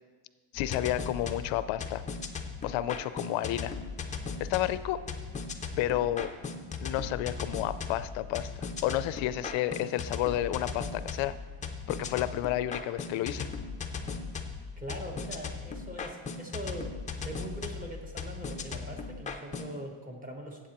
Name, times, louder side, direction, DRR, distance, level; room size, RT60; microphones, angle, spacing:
voice 1, 0.5-2.0 2.6-3.7 4.4-5.0 5.8-6.3 6.8-11.4 11.9-13.5, left 13 dB, 80° left, 14 dB, 0.5 m, -31 dB
sound 1, 0.5-19.7, left 5 dB, 15° left, 0.4 m, -38 dB
Bicycle / Mechanisms, 3.3-9.4, equal, 85° right, 3.3 m, -56 dB
voice 2, 14.8-16.9 17.2-20.7, right 1 dB, 20° right, 1 dB, 1.1 m, -41 dB
15.0 x 7.9 x 2.9 m, 1.4 s
cardioid pair, 170°, 46 cm